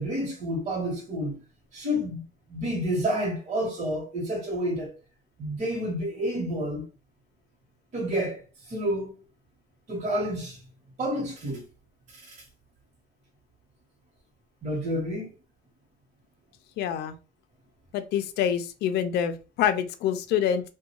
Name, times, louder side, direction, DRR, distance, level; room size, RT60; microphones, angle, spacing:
voice 1, 0.0-1.4 1.7-2.2 2.5-4.9 5.4-6.8 7.9-8.4 8.7-9.1 9.9-10.6 11.0-11.6 12.3-12.4 14.6-15.3, equal, 45° right, 1.0 m, -29 dB
voice 2, 16.8-17.1 17.9-20.6, left 9 dB, 75° left, 0.4 m, -26 dB
2.4 x 2.2 x 2.9 m
cardioid pair, 110°, 17 cm